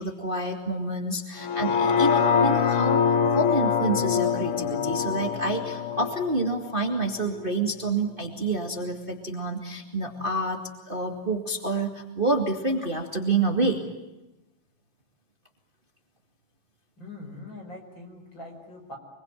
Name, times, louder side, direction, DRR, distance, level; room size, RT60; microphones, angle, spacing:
voice 1, 0.0-10.6 10.9-13.8, right 2 dB, 55° right, 3 dB, 0.5 m, -28 dB
sound 1, 1.4-7.5 7.9-8.0, left 6 dB, 65° left, 2.0 m, -24 dB
voice 2, 17.0-19.0, left 2 dB, 25° left, 3 dB, 5.7 m, -42 dB
26.0 x 23.5 x 9.1 m, 1.0 s
omnidirectional pair, 5.3 m